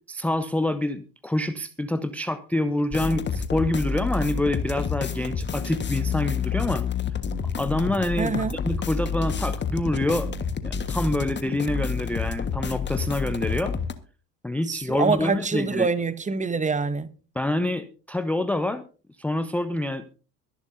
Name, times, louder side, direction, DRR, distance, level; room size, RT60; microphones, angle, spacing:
voice 1, 0.1-6.8 7.6-8.3 8.6-10.3 10.6-13.7 14.4-15.9 17.4-18.8 19.2-20.0, left 1 dB, 5° left, 0.7 m, -26 dB
sound 1, 2.9-13.9, left 5 dB, 20° left, 1.5 m, -28 dB
voice 2, 8.2-8.6 14.7-17.1, right 4 dB, 15° right, 1.0 m, -25 dB
23.0 x 11.0 x 2.7 m
figure-of-eight pair, 65°, 49 cm